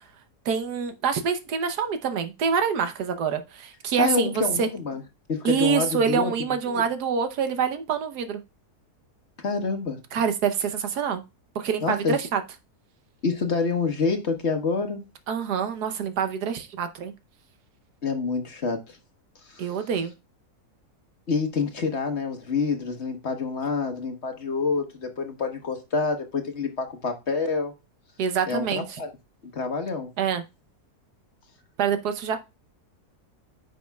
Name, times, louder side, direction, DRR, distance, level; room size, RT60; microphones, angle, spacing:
voice 1, 0.4-4.7 5.4-8.4 10.1-11.2 11.5-12.4 15.3-17.1 19.6-20.1 28.2-29.0 30.2-30.4 31.8-32.4, right 7 dB, 85° right, 1.5 m, -26 dB
voice 2, 4.0-5.0 5.3-6.3 6.7-6.8 9.4-10.0 11.8-12.1 13.2-15.0 18.0-19.0 19.5-19.8 21.3-27.7 28.5-29.1 29.5-30.1, left 4 dB, 45° left, 1.4 m, -27 dB
9.8 x 6.2 x 2.3 m
omnidirectional pair, 1.7 m